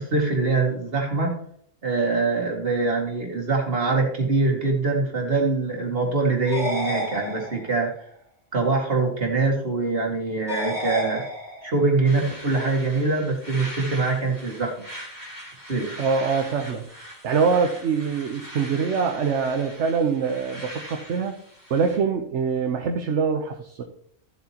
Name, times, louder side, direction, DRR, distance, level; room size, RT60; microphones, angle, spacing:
voice 1, 0.0-1.4 1.8-7.9 8.5-11.2 11.6-14.7 15.7-16.0, right 3 dB, 45° right, 0 dB, 2.4 m, -23 dB
sound 1, 6.5-7.9 10.5-11.9, left 1 dB, 15° right, 2.6 m, -30 dB
sound 2, 12.0-22.0, equal, 15° left, 3.5 m, -41 dB
voice 2, 16.0-16.8 17.2-21.3 21.7-23.8, right 5 dB, 60° right, 4 dB, 1.1 m, -24 dB
15.0 x 7.7 x 2.9 m, 0.65 s
omnidirectional pair, 1.4 m